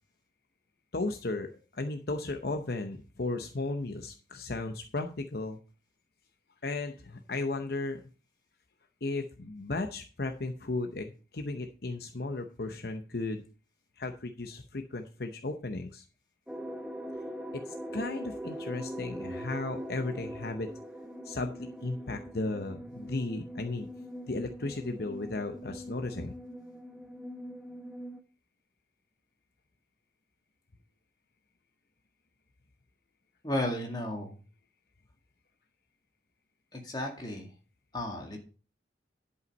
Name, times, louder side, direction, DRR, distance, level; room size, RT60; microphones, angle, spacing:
voice 1, 0.9-5.6 6.6-8.0 9.0-13.4 14.0-16.0 17.5-20.7 21.2-23.9 24.3-26.3, left 2 dB, 55° left, 5 dB, 0.8 m, -35 dB
sound 1, 16.5-28.2, equal, 5° right, 0.7 m, -42 dB
voice 2, 33.4-34.4 36.7-37.5 37.9-38.4, left 1 dB, 25° left, 1 dB, 2.0 m, -34 dB
11.0 x 5.7 x 5.2 m, 0.36 s
head